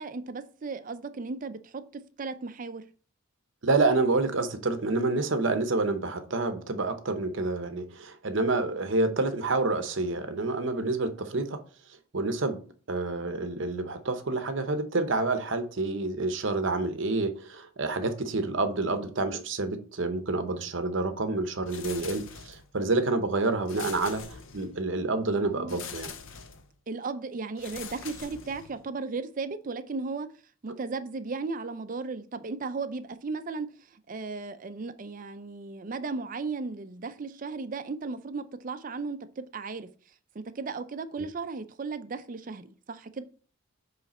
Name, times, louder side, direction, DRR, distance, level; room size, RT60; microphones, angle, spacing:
voice 1, 0.0-1.8 2.2-2.8 25.4-25.8 26.9-30.3 30.6-39.9 40.3-43.2, right 4 dB, 40° right, 0.4 m, -35 dB
voice 2, 3.6-11.6 12.1-12.6 12.9-24.2 24.5-26.1, right 3 dB, 60° right, 0.8 m, -28 dB
sound 1, 21.7-22.8 23.7-24.9 25.7-26.7 27.6-28.9, left 6 dB, 60° left, 0.6 m, -43 dB
7.6 x 3.2 x 4.2 m
head